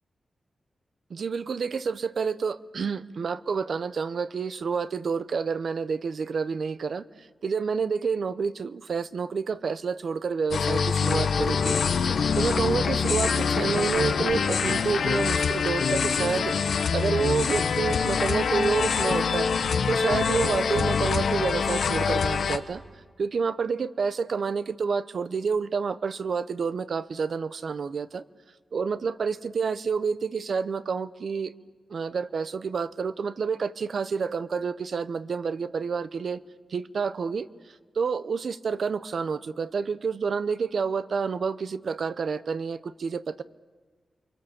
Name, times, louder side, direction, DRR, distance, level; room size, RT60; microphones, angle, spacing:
voice 1, 1.1-7.0 7.4-11.7 12.4-16.5 16.9-19.5 19.9-22.8 23.2-28.2 28.7-31.5 31.9-36.4 36.7-37.5 38.0-43.4, right 5 dB, 65° right, 14 dB, 0.7 m, -29 dB
sound 1, 10.5-22.6, left 6 dB, 85° left, 1.1 m, -25 dB
29.0 x 24.0 x 7.2 m, 1.5 s
wide cardioid pair, 120°, 0 cm